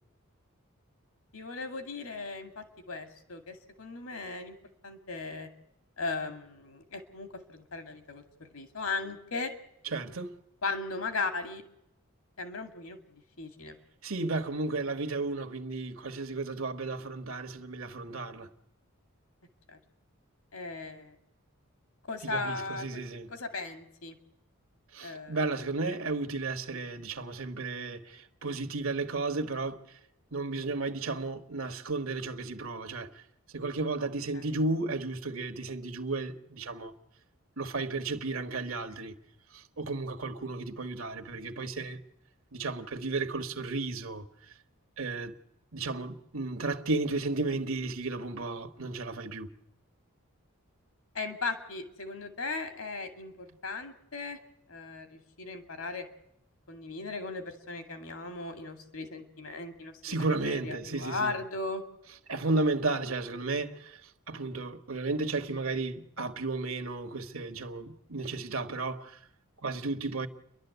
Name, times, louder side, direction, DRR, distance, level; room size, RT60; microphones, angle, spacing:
voice 1, 1.3-4.6 4.8-5.5 6.0-9.5 10.6-11.6 12.4-13.8 19.7-19.8 20.5-21.2 22.1-22.9 23.3-24.2 25.0-25.4 25.7-26.1 34.3-34.5 51.1-54.4 54.7-56.0 56.7-61.8, left 3 dB, 80° left, 2.3 m, -37 dB
voice 2, 9.9-10.4 14.0-18.5 22.2-23.3 24.9-29.8 30.3-33.1 33.5-36.9 37.6-39.1 39.5-42.0 42.5-44.2 45.0-45.3 45.7-49.5 60.0-61.4 62.3-64.0 64.3-69.2 69.6-70.3, right 3 dB, 70° right, 1.4 m, -33 dB
29.5 x 12.0 x 8.1 m
head